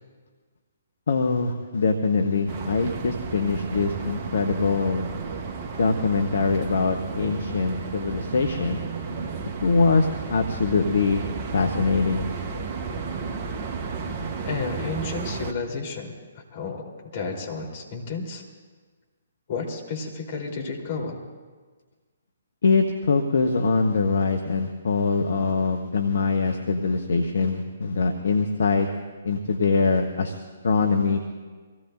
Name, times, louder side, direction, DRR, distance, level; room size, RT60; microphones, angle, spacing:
voice 1, 1.1-5.1 5.8-9.3 9.6-11.2 11.5-12.2 22.6-28.9 29.2-30.4 30.6-31.2, left 4 dB, 55° left, 5 dB, 1.1 m, -23 dB
sound 1, 2.5-15.5, right 5 dB, 30° right, 1.1 m, -33 dB
voice 2, 14.5-16.1 16.5-18.4 19.5-21.2, left 4 dB, 40° left, -1 dB, 3.7 m, -31 dB
25.0 x 17.5 x 2.6 m, 1.5 s
figure-of-eight pair, 130°, 0 cm